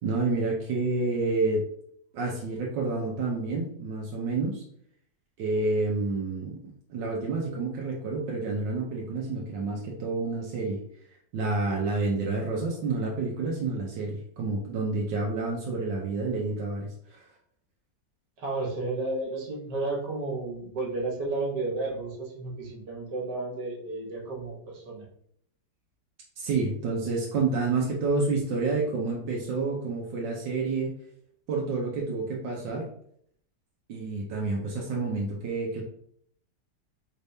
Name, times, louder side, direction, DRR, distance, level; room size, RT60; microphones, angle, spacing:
voice 1, 0.0-1.6 2.1-4.6 5.4-10.8 11.3-17.3 26.4-31.0 31.5-32.9 33.9-35.8, right 3 dB, 90° right, -2 dB, 1.4 m, -29 dB
voice 2, 18.4-25.0, right 2 dB, 70° right, -2 dB, 1.9 m, -32 dB
5.2 x 3.4 x 2.7 m, 0.67 s
omnidirectional pair, 1.9 m